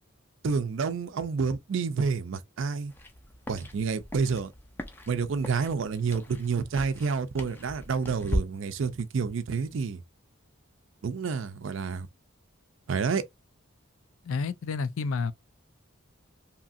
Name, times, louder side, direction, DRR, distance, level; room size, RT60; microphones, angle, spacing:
voice 1, 0.4-2.9 3.5-4.5 5.1-10.0 11.0-12.1 12.9-13.2, right 5 dB, 65° right, 0.4 m, -29 dB
sound 1, 2.9-8.4, equal, 10° left, 0.4 m, -37 dB
voice 2, 14.2-15.3, left 4 dB, 80° left, 0.4 m, -30 dB
2.8 x 2.4 x 2.6 m
head